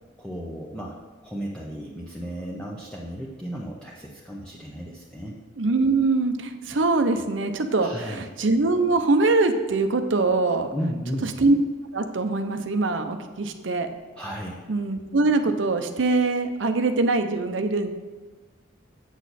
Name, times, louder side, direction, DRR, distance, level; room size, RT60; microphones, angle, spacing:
voice 1, 0.2-0.9 1.2-5.4 7.8-8.3 10.7-11.3 14.2-14.6, equal, 5° left, -4 dB, 0.7 m, -34 dB
voice 2, 5.6-10.7 11.4-11.5 11.9-13.9 14.7-17.9, right 3 dB, 75° right, 7 dB, 0.7 m, -23 dB
8.0 x 6.4 x 4.1 m, 1.4 s
head